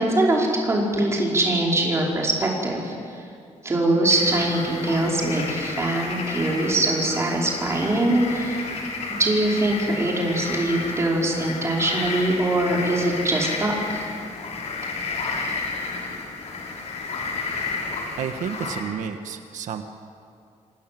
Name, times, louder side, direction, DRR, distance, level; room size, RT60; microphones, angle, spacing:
voice 1, 0.0-2.9 3.6-8.7 9.2-14.0, right 1 dB, 20° right, -2 dB, 5.1 m, -22 dB
sound 1, 4.1-18.8, left 4 dB, 60° left, 5.7 m, -32 dB
voice 2, 18.2-19.8, right 7 dB, 85° right, 7 dB, 1.5 m, -31 dB
27.0 x 26.5 x 7.8 m, 2.4 s
wide cardioid pair, 175°, 13 cm